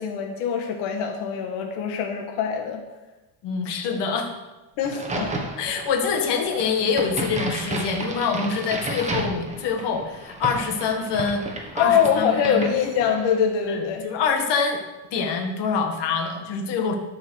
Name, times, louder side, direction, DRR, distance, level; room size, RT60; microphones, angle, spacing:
voice 1, 0.0-2.8 4.8-5.3 11.8-14.0, left 7 dB, 85° left, 3 dB, 1.6 m, -23 dB
voice 2, 3.4-4.3 5.6-11.4 11.7-12.7 13.6-14.8 15.1-16.9, left 5 dB, 55° left, 3 dB, 1.9 m, -25 dB
Crack, 4.8-13.4, right 2 dB, 15° right, 1.6 m, -33 dB
12.5 x 5.6 x 6.4 m, 1.1 s
cardioid pair, 150°, 48 cm